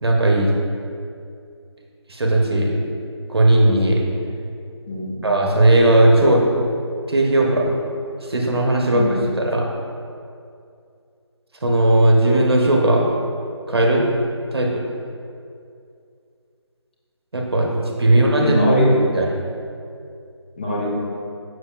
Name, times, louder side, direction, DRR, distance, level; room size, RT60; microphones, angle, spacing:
voice 1, 0.0-0.5 2.1-2.9 3.3-4.0 5.2-6.5 7.1-7.7 8.3-9.0 9.4-9.7 11.6-13.0 13.7-14.0 14.5-14.7 17.3-18.6 19.1-19.3, right 1 dB, 60° right, 0 dB, 0.9 m, -17 dB
voice 2, 4.9-5.2 8.9-9.3 18.1-19.0 20.6-20.9, equal, 20° left, -4 dB, 0.7 m, -21 dB
6.9 x 6.4 x 2.3 m, 2.4 s
figure-of-eight pair, 170°, 15 cm